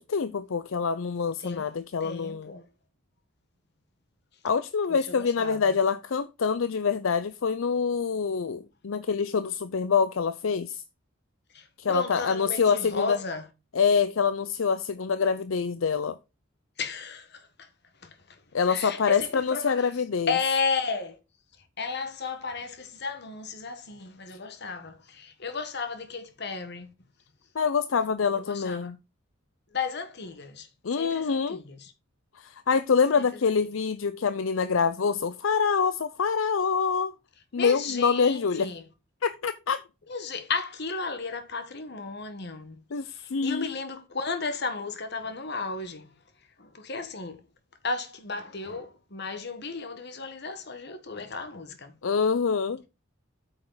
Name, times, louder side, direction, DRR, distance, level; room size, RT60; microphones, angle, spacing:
voice 1, 0.0-2.5 4.4-10.8 11.8-13.2 13.7-16.2 18.5-20.3 27.5-29.0 30.8-31.6 32.4-37.1 37.5-38.7 39.2-39.8 42.9-43.7 52.0-52.8, left 5 dB, 75° left, 0.5 m, -26 dB
voice 2, 2.0-2.7 4.9-5.7 11.5-13.5 16.8-17.7 18.0-18.4 18.7-19.9 20.3-21.2 21.8-26.9 28.3-28.9 29.7-30.7 31.0-31.9 33.2-33.3 37.5-38.8 40.1-46.1 46.6-47.4 47.8-51.9, left 4 dB, 55° left, 1.5 m, -34 dB
8.8 x 6.4 x 3.9 m
head